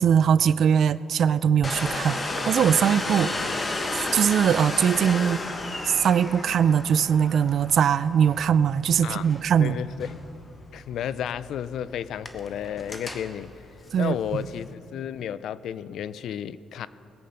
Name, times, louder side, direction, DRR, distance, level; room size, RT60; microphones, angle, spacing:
voice 1, 0.0-3.3 4.1-5.4 5.9-9.8 13.9-14.4, right 8 dB, 65° right, 17 dB, 0.4 m, -21 dB
Domestic sounds home sounds, 1.6-14.7, left 2 dB, 30° left, 1.3 m, -34 dB
voice 2, 9.6-10.1 10.7-13.5 14.0-16.9, left 9 dB, 75° left, 17 dB, 0.4 m, -32 dB
20.0 x 8.5 x 5.7 m, 3.0 s
cardioid pair, 90°, 0 cm